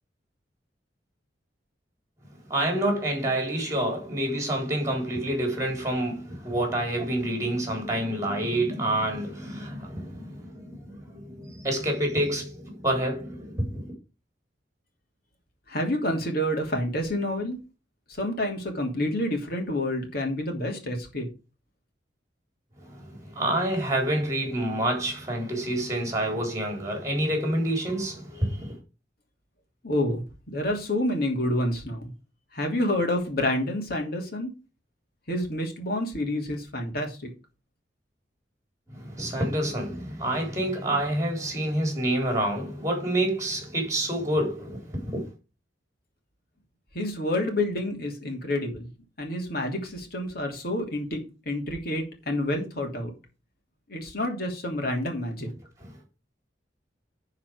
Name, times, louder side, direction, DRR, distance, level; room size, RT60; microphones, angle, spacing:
voice 1, 2.5-13.9 22.8-28.8 38.9-45.3 55.8-55.9, right 1 dB, 15° right, 4.0 m, -28 dB
voice 2, 15.7-17.6 18.2-21.3 29.8-32.1 32.5-34.5 35.3-37.3 46.9-48.9 49.2-53.1 53.9-55.5, left 1 dB, 55° left, 2.9 m, -28 dB
10.0 x 4.8 x 6.3 m
head